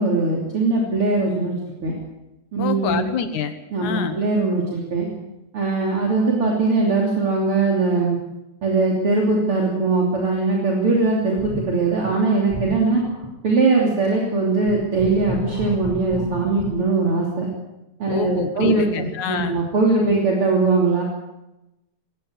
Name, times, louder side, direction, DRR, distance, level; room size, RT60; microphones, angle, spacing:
voice 1, 0.0-1.6 1.8-2.0 2.5-3.1 3.7-5.1 5.5-8.2 8.6-13.0 13.4-17.5 18.0-21.0, right 3 dB, 45° right, -1 dB, 3.9 m, -20 dB
voice 2, 2.6-3.5 3.8-4.2 18.1-19.5, left 7 dB, 75° left, 9 dB, 2.6 m, -26 dB
sound 1, 11.2-12.2 12.5-13.5 14.0-14.1 14.6-16.7, right 1 dB, 10° right, 7.3 m, -31 dB
20.0 x 18.0 x 7.8 m, 0.95 s
omnidirectional pair, 3.4 m